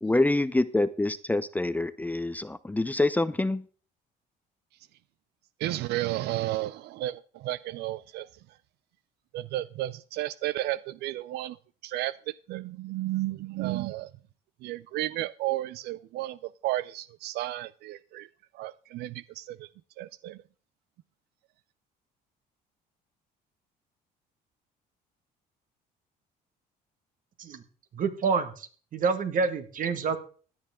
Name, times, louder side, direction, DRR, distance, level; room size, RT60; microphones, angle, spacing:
voice 1, 0.0-3.6, left 2 dB, 10° left, 0.6 m, -26 dB
voice 2, 5.6-8.3 9.3-11.6 11.8-12.1 12.5-14.1 14.6-16.4 16.6-18.3 18.5-19.7 20.0-20.4, right 15 dB, 80° right, 0.5 m, -32 dB
voice 3, 27.9-30.2, right 5 dB, 55° right, 1.8 m, -28 dB
16.5 x 10.5 x 3.7 m
cardioid pair, 110°, 17 cm